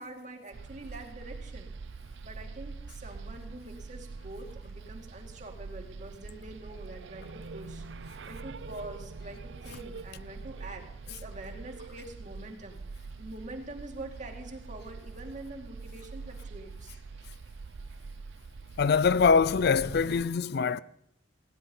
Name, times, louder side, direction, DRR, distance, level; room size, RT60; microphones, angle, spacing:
voice 1, 0.0-1.7 2.2-17.0, right 2 dB, 45° right, 2.3 m, -45 dB
sound 1, 0.5-20.2, right 4 dB, 80° right, 0.6 m, -44 dB
voice 2, 18.8-20.8, left 5 dB, 60° left, 0.4 m, -23 dB
16.5 x 10.0 x 5.5 m
head